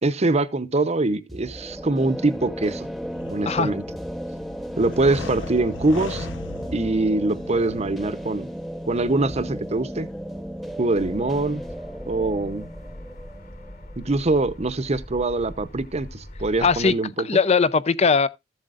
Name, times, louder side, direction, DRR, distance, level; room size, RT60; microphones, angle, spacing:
voice 1, 0.0-2.9 3.3-3.8 4.8-6.3 6.7-8.5 8.9-10.1 10.8-11.6 12.1-12.7 14.0-17.3, right 2 dB, 35° right, 0.8 m, -23 dB
sound 1, 1.3-15.0, equal, ahead, 1.0 m, -35 dB
sound 2, 2.6-11.1, left 2 dB, 90° left, 0.9 m, -40 dB
sound 3, 10.9-16.9, equal, 50° left, 3.8 m, -41 dB
voice 2, 16.6-18.3, left 5 dB, 35° left, 0.5 m, -20 dB
14.0 x 7.7 x 2.5 m
head